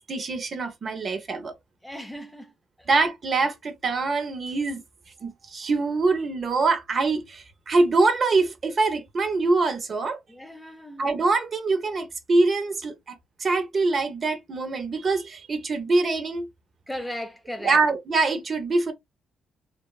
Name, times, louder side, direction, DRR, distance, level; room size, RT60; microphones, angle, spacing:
voice 1, 0.0-1.5 2.9-4.8 5.2-10.2 11.0-16.5 17.6-18.9, right 3 dB, 40° right, 0.7 m, -24 dB
voice 2, 1.8-2.5 2.8-2.9 10.3-11.1 16.9-17.8, equal, 5° left, 0.5 m, -37 dB
3.0 x 2.1 x 2.3 m
cardioid pair, 90°, 0 cm